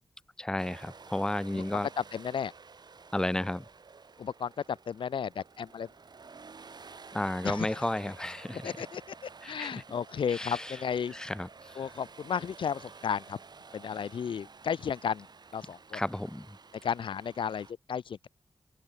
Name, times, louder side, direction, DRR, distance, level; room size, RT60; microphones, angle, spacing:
voice 1, 0.4-1.9 3.1-3.6 7.1-8.7 9.4-9.7 10.3-10.8 11.1-11.8 15.9-16.6, left 1 dB, 10° left, 0.6 m, -33 dB
sound 1, 0.6-17.7, right 4 dB, 55° right, 6.6 m, -52 dB
voice 2, 1.5-2.5 4.2-5.9 7.4-7.9 8.6-11.1 11.8-13.4 13.7-15.3 15.5-16.0 16.8-18.3, left 7 dB, 80° left, 0.5 m, -34 dB
open air
wide cardioid pair, 120°, 8 cm